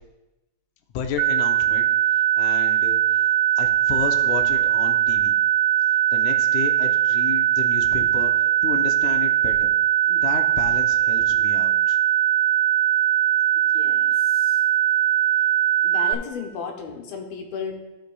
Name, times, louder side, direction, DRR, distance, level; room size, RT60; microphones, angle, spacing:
voice 1, 0.9-1.9 2.4-5.3 6.1-9.7 10.1-12.0, left 7 dB, 70° left, 3 dB, 2.0 m, -32 dB
sound 1, 1.2-16.1, right 12 dB, 85° right, 1.6 m, -20 dB
voice 2, 13.7-14.6 15.8-17.8, left 6 dB, 85° left, 2 dB, 2.9 m, -34 dB
15.5 x 6.5 x 2.3 m, 1.0 s
omnidirectional pair, 4.1 m